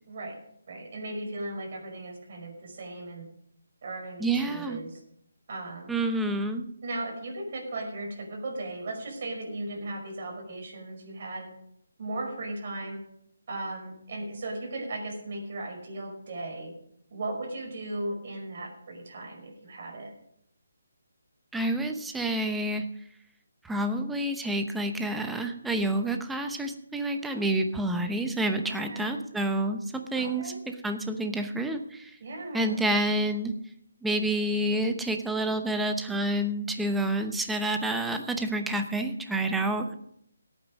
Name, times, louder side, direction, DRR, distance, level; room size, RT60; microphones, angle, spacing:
voice 1, 0.1-0.4 0.7-3.3 3.8-5.0 5.5-5.9 6.8-11.5 12.0-13.0 13.5-16.7 17.1-20.1 28.6-29.2 30.1-30.6 32.2-32.8 39.6-39.8, right 2 dB, 45° right, 0 dB, 5.4 m, -37 dB
voice 2, 4.2-4.8 5.9-6.7 21.5-22.8 23.6-30.5 30.8-32.1 32.5-33.5 34.0-39.9, right 1 dB, 5° right, 5 dB, 0.8 m, -28 dB
17.5 x 9.1 x 5.3 m, 0.72 s
hypercardioid pair, 170°, 0 cm